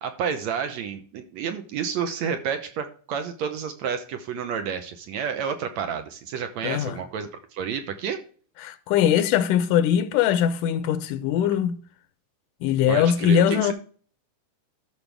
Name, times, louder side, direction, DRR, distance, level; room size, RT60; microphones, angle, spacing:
voice 1, 0.0-8.2 12.9-13.7, right 7 dB, 70° right, 1.9 m, -30 dB
voice 2, 6.6-7.0 8.6-11.8 12.6-13.7, left 9 dB, 80° left, 2.2 m, -21 dB
13.0 x 5.9 x 3.4 m
omnidirectional pair, 3.8 m